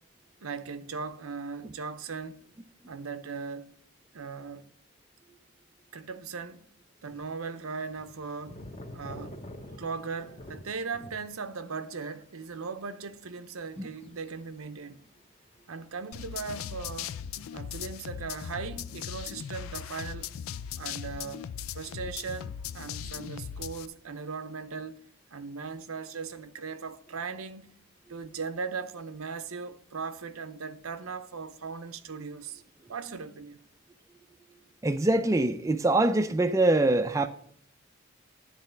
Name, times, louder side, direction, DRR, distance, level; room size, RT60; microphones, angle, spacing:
voice 1, 0.4-2.5 2.9-3.7 4.1-4.7 5.9-6.7 7.0-8.6 8.9-9.4 9.8-15.0 15.7-17.2 17.5-20.4 20.8-25.0 25.3-27.7 28.1-32.6 32.9-33.6, right 5 dB, 85° right, 0.7 m, -38 dB
sound 1, 7.1-11.5 11.8-15.9 16.5-16.6 17.8-17.9 18.4-19.0 19.3-20.3, left 1 dB, 30° left, 0.9 m, -48 dB
sound 2, 16.1-23.9, left 8 dB, 80° left, 0.4 m, -38 dB
voice 2, 34.8-37.3, right 2 dB, 15° right, 0.4 m, -24 dB
10.5 x 4.1 x 6.8 m
head